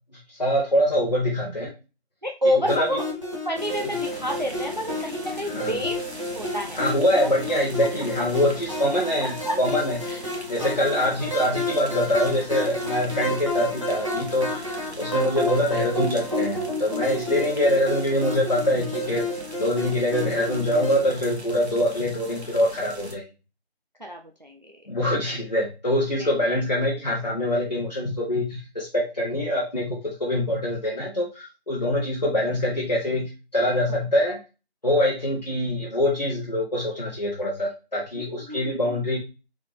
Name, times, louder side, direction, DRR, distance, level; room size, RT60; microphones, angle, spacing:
voice 1, 0.1-1.7 2.7-2.9 3.8-3.9 5.4-5.8 6.7-10.0 10.5-19.3 19.6-23.2 24.9-34.4 34.8-39.2, left 1 dB, 40° left, -4 dB, 0.9 m, -24 dB
voice 2, 2.2-3.0 3.5-6.0 6.3-6.8 9.2-9.6 10.1-10.2 10.6-11.0 15.0-15.1 24.0-24.8 26.2-26.6 38.1-39.0, equal, 45° right, 2 dB, 0.4 m, -29 dB
sound 1, 2.7-21.1, left 1 dB, 30° right, 0.9 m, -31 dB
sound 2, 3.6-23.2, right 1 dB, 85° right, 1.2 m, -42 dB
4.0 x 3.7 x 3.2 m, 0.32 s
figure-of-eight pair, 175°, 32 cm